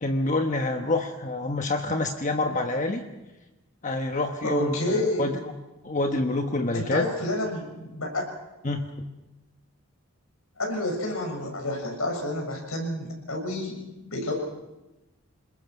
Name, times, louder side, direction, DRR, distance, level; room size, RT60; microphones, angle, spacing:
voice 1, 0.0-3.0 3.8-5.5 5.8-7.1 8.6-9.1, left 2 dB, 35° left, 5 dB, 1.1 m, -27 dB
voice 2, 4.4-5.3 6.7-8.3 10.6-13.8 14.1-14.3, left 1 dB, 85° left, 1 dB, 6.9 m, -29 dB
27.5 x 21.0 x 6.1 m, 1.0 s
head